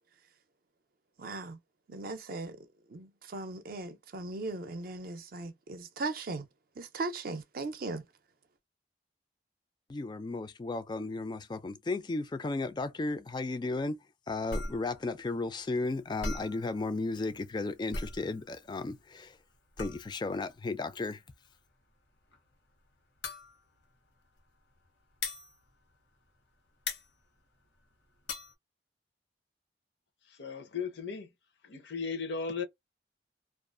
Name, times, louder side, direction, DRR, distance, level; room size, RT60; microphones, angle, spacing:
voice 1, 1.2-1.6 1.9-6.5 6.8-8.0, right 3 dB, 55° right, 0.5 m, -38 dB
voice 2, 9.9-14.0 14.3-19.4 19.8-21.2, left 3 dB, 25° left, 0.3 m, -34 dB
sound 1, 14.5-26.5 26.8-28.5, left 2 dB, 85° left, 1.0 m, -40 dB
voice 3, 30.4-31.3 31.6-32.6, left 5 dB, 70° left, 0.6 m, -36 dB
2.4 x 2.3 x 2.4 m
head